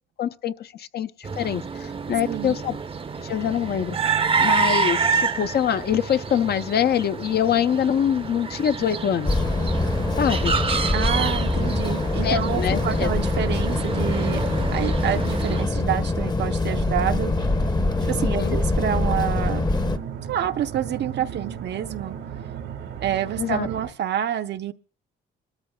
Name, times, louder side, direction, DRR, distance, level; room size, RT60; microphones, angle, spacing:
voice 1, 0.2-1.1 1.4-2.8 3.2-4.0 4.4-9.3 10.2-10.5 11.8-11.9 12.2-13.1 18.1-18.6 23.4-23.7, left 9 dB, 55° left, 0.6 m, -24 dB
sound 1, 1.2-15.6, right 5 dB, 30° right, 0.7 m, -28 dB
sound 2, 9.2-20.0, left 2 dB, 20° left, 0.8 m, -24 dB
voice 2, 10.9-14.4 14.7-17.3 18.1-19.6 20.3-22.2 23.0-24.7, right 10 dB, 60° right, 0.7 m, -28 dB
sound 3, 16.6-23.9, right 8 dB, 85° right, 1.8 m, -36 dB
26.5 x 13.0 x 2.3 m
cardioid pair, 90°, 20 cm